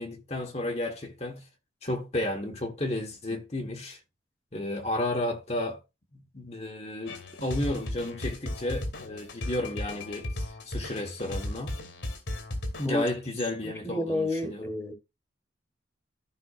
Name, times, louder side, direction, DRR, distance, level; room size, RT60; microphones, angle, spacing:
voice 1, 0.0-1.4 1.8-4.0 4.5-5.8 6.1-11.8 12.8-14.6, left 1 dB, 35° left, 1.3 m, -32 dB
sound 1, 7.1-12.9, left 1 dB, 80° left, 2.5 m, -35 dB
voice 2, 13.6-14.9, left 1 dB, 15° left, 1.4 m, -30 dB
14.5 x 5.4 x 2.4 m
head